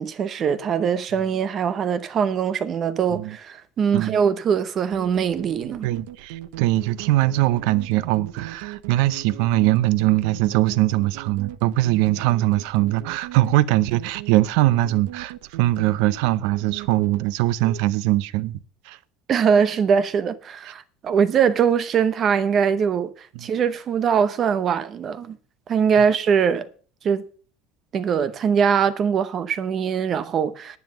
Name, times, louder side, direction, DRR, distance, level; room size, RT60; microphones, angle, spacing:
voice 1, 0.0-5.9 19.3-25.4 25.7-26.7 27.0-27.2 27.9-30.8, right 7 dB, 30° right, 0.8 m, -22 dB
sound 1, 4.9-17.8, right 14 dB, 85° right, 0.9 m, -38 dB
voice 2, 5.8-18.6 18.8-19.0 23.3-23.5, right 16 dB, 65° right, 0.6 m, -21 dB
11.0 x 9.3 x 6.9 m
cardioid pair, 175°, 0 cm